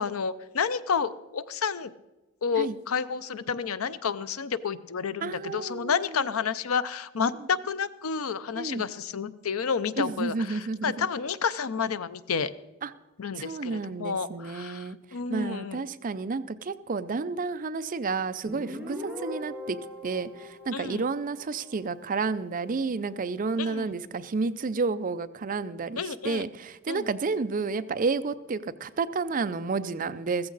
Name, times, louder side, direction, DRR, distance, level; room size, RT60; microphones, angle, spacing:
voice 1, 0.0-1.9 2.4-12.5 13.2-15.8 20.7-21.0 23.6-23.9 26.0-26.4 26.9-27.0, left 6 dB, 85° left, 15 dB, 0.6 m, -30 dB
voice 2, 5.2-6.2 7.4-7.5 8.5-8.8 10.0-11.1 12.8-12.9 13.4-15.0 15.3-19.8 20.0-30.5, right 4 dB, 40° right, 12 dB, 0.5 m, -31 dB
Guitar, 18.4-21.9, left 1 dB, 5° right, 2.1 m, -40 dB
14.5 x 14.5 x 4.0 m, 1.1 s
head